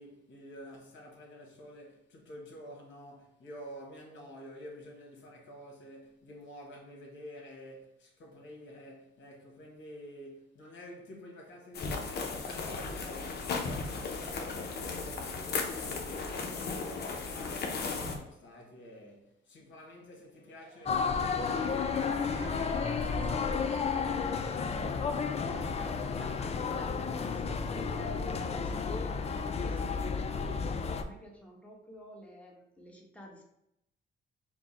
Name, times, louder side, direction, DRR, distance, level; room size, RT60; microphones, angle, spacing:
voice 1, 0.0-25.7, equal, 70° left, 1.4 m, -50 dB
sound 1, 11.7-18.2, left 4 dB, 55° left, 0.8 m, -36 dB
Cheering / Applause, 20.4-27.1, right 4 dB, 80° right, 0.9 m, -50 dB
sound 2, 20.9-31.0, left 5 dB, 30° left, 0.4 m, -32 dB
voice 2, 25.4-33.5, left 1 dB, 5° left, 1.1 m, -49 dB
4.5 x 2.2 x 4.1 m
cardioid pair, 90°, 20 cm